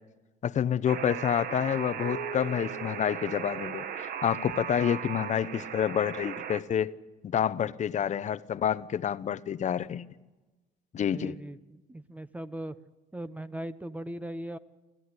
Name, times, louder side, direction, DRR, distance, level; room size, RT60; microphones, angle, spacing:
voice 1, 0.4-6.9 7.2-10.0 10.9-11.4, left 9 dB, 45° left, 15 dB, 0.9 m, -28 dB
Alarm, 0.9-6.6, right 9 dB, 60° right, 1.3 m, -37 dB
sound 1, 2.0-4.6, right 4 dB, 80° right, 2.2 m, -43 dB
voice 2, 11.0-12.8 13.1-14.6, right 1 dB, 10° right, 13 dB, 0.8 m, -39 dB
29.5 x 13.5 x 9.7 m, 1.2 s
cardioid pair, 110°, 17 cm